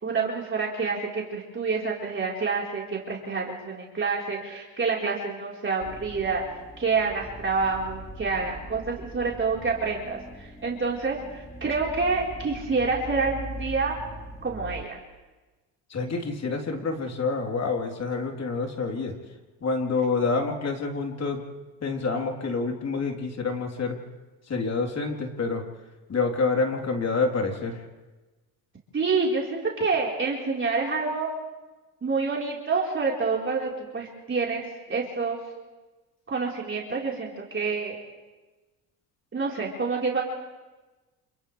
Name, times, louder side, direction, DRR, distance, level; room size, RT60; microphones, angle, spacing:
voice 1, 0.0-6.4 6.8-14.0 14.4-15.0 28.9-31.3 32.0-35.4 36.3-38.0 39.3-40.2, right 4 dB, 30° right, -3 dB, 4.5 m, -27 dB
sound 1, 5.8-14.8, equal, 10° left, 4.2 m, -41 dB
voice 2, 15.9-19.1 19.6-21.4 21.8-24.0 24.5-25.6 26.1-27.8, left 4 dB, 40° left, 2 dB, 3.9 m, -27 dB
29.5 x 28.0 x 3.5 m, 1.2 s
supercardioid pair, 80°, 40 cm